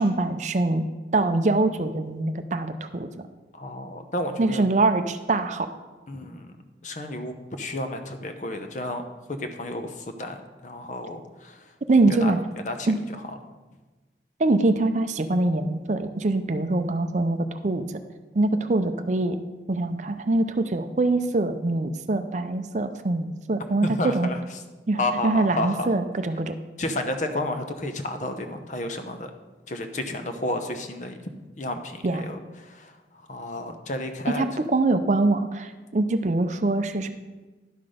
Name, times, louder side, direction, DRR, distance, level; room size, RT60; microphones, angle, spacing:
voice 1, 0.0-3.1 4.4-5.7 11.9-12.4 12.9-13.0 14.4-17.8 18.4-19.4 19.7-24.3 24.9-26.6 32.0-32.2 34.3-37.1, right 2 dB, 40° right, 9 dB, 0.5 m, -24 dB
voice 2, 3.5-4.6 6.1-6.5 6.8-9.0 9.3-10.4 10.6-11.7 12.1-13.4 23.8-24.4 25.0-25.9 26.8-29.3 29.7-31.3 31.6-33.0 33.3-34.5, left 1 dB, 45° left, 6 dB, 0.8 m, -31 dB
11.0 x 5.9 x 5.0 m, 1.2 s
head